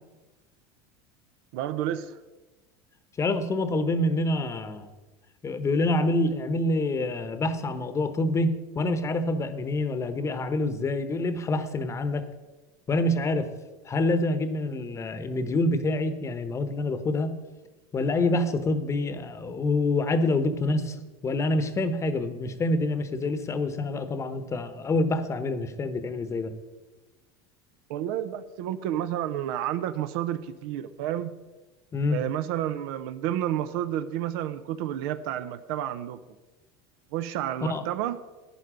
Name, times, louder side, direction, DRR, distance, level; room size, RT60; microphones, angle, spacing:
voice 1, 1.5-2.2 27.9-31.3 32.1-36.2 37.1-38.2, right 11 dB, 70° right, 0.7 m, -30 dB
voice 2, 3.2-4.9 5.4-12.2 12.9-13.5 13.8-17.4 17.9-21.0 21.2-26.5 31.9-32.2 37.6-37.8, left 2 dB, 25° left, 1.0 m, -26 dB
11.5 x 9.4 x 5.1 m
supercardioid pair, 125°, 13 cm